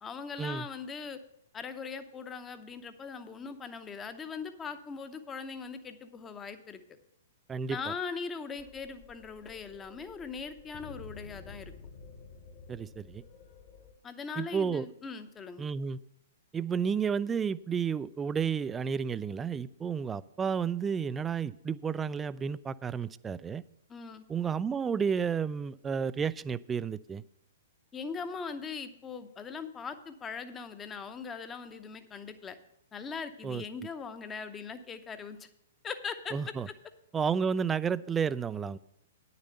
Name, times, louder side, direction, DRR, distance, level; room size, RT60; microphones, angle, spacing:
voice 1, 0.0-1.2 1.5-6.8 7.7-11.7 14.0-15.6 23.9-24.2 27.9-32.6 32.9-35.5 35.8-36.3 36.7-36.8, left 5 dB, 15° left, 10 dB, 0.8 m, -40 dB
voice 2, 7.5-7.9 12.7-13.2 14.4-14.9 15.6-16.0 16.5-23.6 24.3-27.2 33.4-33.6 36.3-36.7 37.1-38.8, right 6 dB, 15° right, 18 dB, 0.3 m, -31 dB
sound 1, 8.6-13.9, left 4 dB, 35° left, 1.3 m, -51 dB
9.8 x 6.7 x 6.6 m, 0.81 s
figure-of-eight pair, 115°, 0 cm